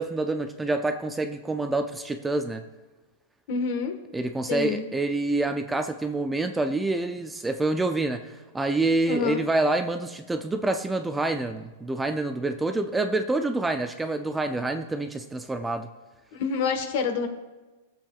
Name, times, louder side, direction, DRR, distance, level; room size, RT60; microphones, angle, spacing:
voice 1, 0.0-2.6 4.1-15.9, right 2 dB, 5° right, 6 dB, 0.4 m, -27 dB
voice 2, 3.5-3.9 4.5-4.8 9.1-9.4 16.3-17.3, left 5 dB, 55° left, 6 dB, 1.4 m, -27 dB
22.0 x 7.5 x 2.4 m, 1.2 s
supercardioid pair, 160°, 0 cm